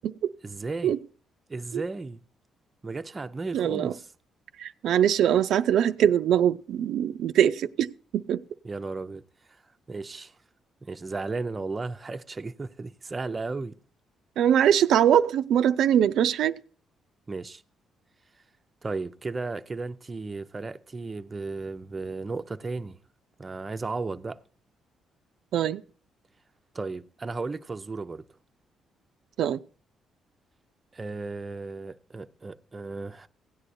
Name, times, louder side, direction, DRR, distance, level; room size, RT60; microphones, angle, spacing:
voice 1, 0.4-0.9 1.5-2.2 2.8-4.1 8.6-9.2 9.5-9.6 9.9-10.3 10.8-13.8 17.3-17.6 18.8-23.0 23.4-24.4 26.7-28.3 30.9-33.3, right 3 dB, 30° right, 0.6 m, -34 dB
voice 2, 3.5-3.9 4.6-7.9 8.1-8.4 14.4-16.5 25.5-25.8 29.4-29.6, right 10 dB, 75° right, 0.4 m, -22 dB
16.5 x 9.8 x 2.6 m
cardioid pair, 90°, 0 cm